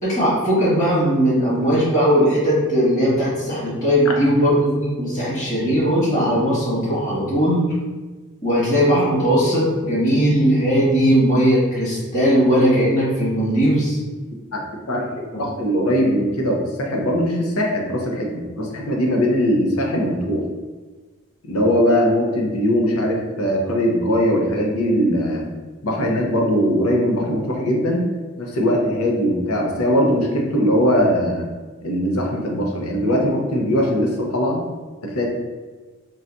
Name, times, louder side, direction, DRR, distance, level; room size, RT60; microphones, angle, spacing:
voice 1, 0.0-7.7 8.4-14.0, equal, 35° left, -9 dB, 1.5 m, -18 dB
voice 2, 14.9-20.4 21.4-25.4 25.8-28.0 28.4-31.5 31.8-34.6 35.0-35.3, equal, 85° left, 0 dB, 0.7 m, -20 dB
4.0 x 2.2 x 2.6 m, 1.3 s
head